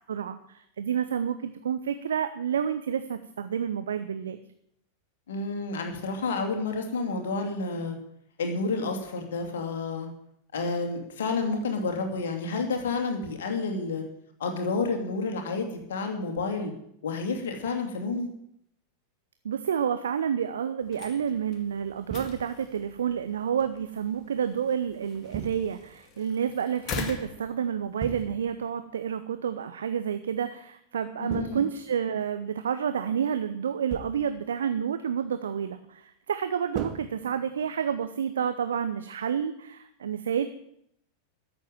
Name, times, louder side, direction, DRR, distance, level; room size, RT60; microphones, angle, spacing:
voice 1, 0.1-4.4 19.4-40.5, right 8 dB, 65° right, 10 dB, 0.8 m, -29 dB
voice 2, 5.3-8.0 8.4-10.1 10.5-14.0 14.4-16.7 17.0-18.3 31.2-31.6, left 3 dB, 60° left, 4 dB, 2.6 m, -30 dB
sound 1, 20.8-28.3, left 5 dB, 35° left, 2.0 m, -43 dB
sound 2, 22.1-22.7 25.3-26.0 28.0-28.7 31.3-32.2 33.9-34.5 36.7-37.8, right 8 dB, 35° right, 1.2 m, -39 dB
13.5 x 7.1 x 9.2 m, 0.75 s
figure-of-eight pair, 90°, 0 cm